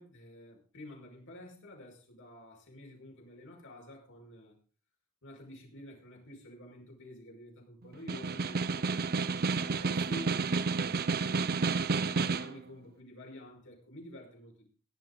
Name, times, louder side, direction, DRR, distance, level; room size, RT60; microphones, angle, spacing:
voice 1, 0.0-4.6 5.2-9.3 9.5-11.5 12.0-14.7, left 1 dB, 60° left, 0 dB, 5.5 m, -49 dB
Snare drum, 7.9-12.6, right 4 dB, 45° right, 0.6 m, -30 dB
18.0 x 11.0 x 3.9 m, 0.40 s
head